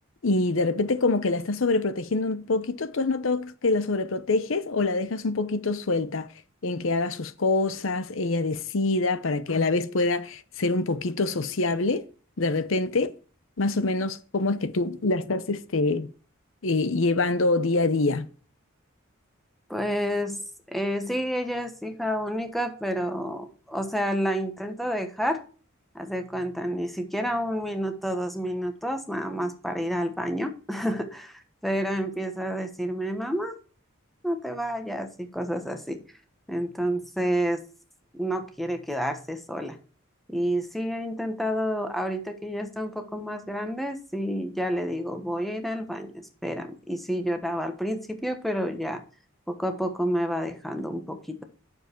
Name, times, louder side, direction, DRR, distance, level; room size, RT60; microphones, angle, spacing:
voice 1, 0.2-6.3 6.6-12.1 12.4-13.1 13.6-16.1 16.6-18.2, left 3 dB, 70° left, 0.7 m, -25 dB
voice 2, 19.7-20.4 20.7-25.4 25.9-33.5 34.2-36.0 36.5-37.6 38.1-39.8 40.3-49.0 49.5-51.4, equal, ahead, 1.2 m, -29 dB
9.4 x 7.0 x 4.5 m
head